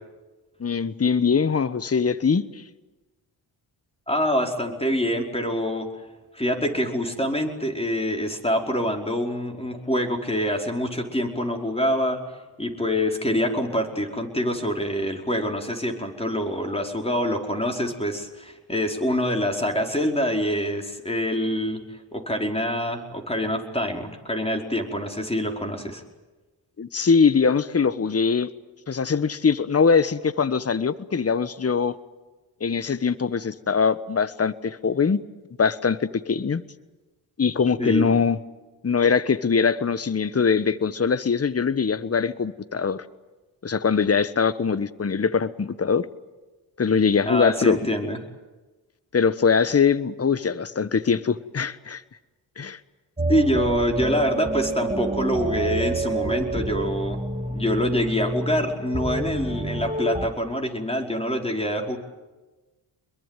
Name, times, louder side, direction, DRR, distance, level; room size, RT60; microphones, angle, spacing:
voice 1, 0.6-2.5 26.8-28.5 28.9-32.0 32.6-35.2 35.6-36.6 37.4-38.4 38.8-43.0 43.6-46.1 46.8-47.8 49.1-52.0 52.6-52.8, left 5 dB, 30° left, 16 dB, 1.2 m, -22 dB
voice 2, 4.1-5.9 6.3-12.2 12.6-21.8 22.1-26.0 37.8-38.1 47.3-48.2 53.3-57.2 57.5-62.0, equal, 10° left, 3 dB, 4.8 m, -25 dB
sound 1, 53.2-60.3, right 2 dB, 15° right, 2.3 m, -28 dB
24.0 x 22.0 x 9.2 m, 1.2 s
supercardioid pair, 45°, 48 cm